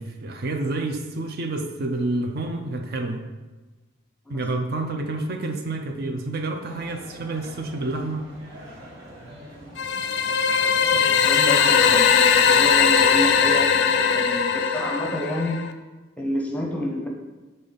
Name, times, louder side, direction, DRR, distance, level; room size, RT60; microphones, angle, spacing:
voice 1, 0.0-3.2 4.3-8.3, right 2 dB, 50° right, 5 dB, 0.5 m, -29 dB
sound 1, 6.7-11.9, right 1 dB, 85° right, 1.9 m, -44 dB
sound 2, 9.8-15.7, left 6 dB, 60° left, 0.4 m, -19 dB
voice 2, 10.4-15.6 16.2-17.1, left 1 dB, 5° left, 0 dB, 0.7 m, -29 dB
6.9 x 3.8 x 4.0 m, 1.2 s
head